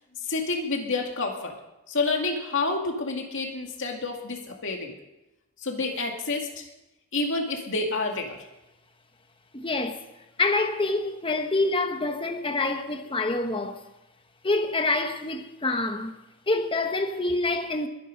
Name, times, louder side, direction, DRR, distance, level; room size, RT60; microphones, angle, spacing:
voice 1, 0.2-1.5 1.9-4.9 5.6-6.6 7.1-8.4, left 3 dB, 60° left, 2.4 m, -29 dB
voice 2, 9.5-10.1 10.4-13.8 14.4-16.2 16.5-17.9, left 2 dB, 25° left, 1.2 m, -26 dB
22.0 x 10.5 x 5.3 m
head